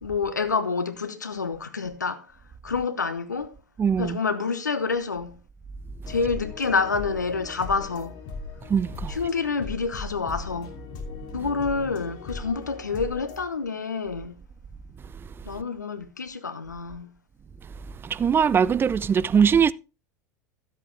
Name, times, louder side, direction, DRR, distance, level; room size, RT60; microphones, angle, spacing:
voice 1, 0.0-2.3 2.6-3.5 4.0-5.4 6.1-8.2 9.1-10.8 11.3-14.4 15.4-17.1, left 4 dB, 90° left, 1.0 m, -28 dB
voice 2, 3.8-4.2 8.7-9.1 18.0-19.7, right 7 dB, 25° right, 0.5 m, -21 dB
sound 1, 6.0-13.4, left 4 dB, 50° left, 3.0 m, -38 dB
13.0 x 7.8 x 3.3 m
hypercardioid pair, 80°, 9 cm